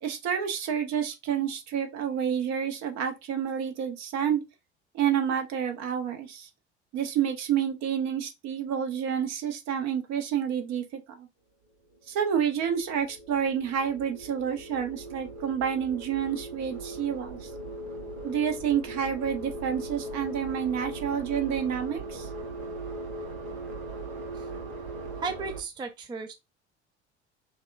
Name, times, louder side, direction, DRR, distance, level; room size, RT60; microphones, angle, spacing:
voice 1, 0.0-4.4 4.9-6.5 6.9-11.3 12.1-17.5 18.2-22.3, right 8 dB, 50° right, 0.9 m, -29 dB
sound 1, 11.9-25.6, right 1 dB, 70° right, 1.1 m, -39 dB
voice 2, 25.2-26.3, right 4 dB, 15° right, 0.4 m, -35 dB
5.6 x 2.1 x 2.5 m
figure-of-eight pair, 60°, 34 cm